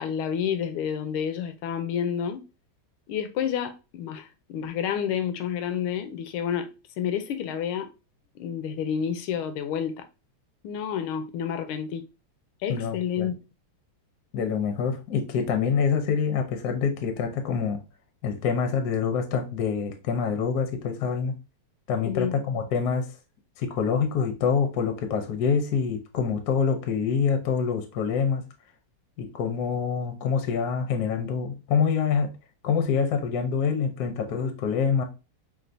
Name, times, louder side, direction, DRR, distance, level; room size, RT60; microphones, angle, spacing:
voice 1, 0.0-2.4 3.1-6.7 7.0-7.9 8.4-10.0 10.6-12.1 12.6-13.3 22.0-22.4, left 8 dB, 80° left, 1.5 m, -29 dB
voice 2, 12.7-13.3 14.3-17.8 18.2-21.3 21.9-23.1 23.6-28.4 29.2-32.3 32.6-35.0, left 6 dB, 65° left, 1.0 m, -26 dB
6.1 x 2.5 x 2.6 m
omnidirectional pair, 2.4 m